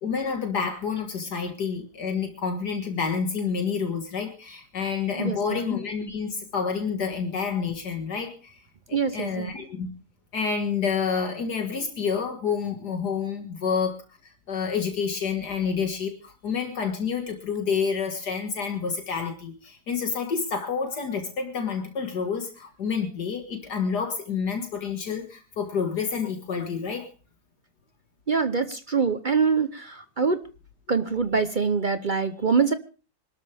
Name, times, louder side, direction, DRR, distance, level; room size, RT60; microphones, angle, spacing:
voice 1, 0.0-8.6 8.9-9.9 10.3-14.0 14.2-27.1, left 6 dB, 75° left, 4 dB, 2.3 m, -29 dB
voice 2, 5.2-5.6 8.9-9.5 28.3-30.4 30.9-32.7, right 5 dB, 40° right, 11 dB, 0.7 m, -24 dB
25.0 x 13.0 x 3.4 m, 0.35 s
omnidirectional pair, 1.8 m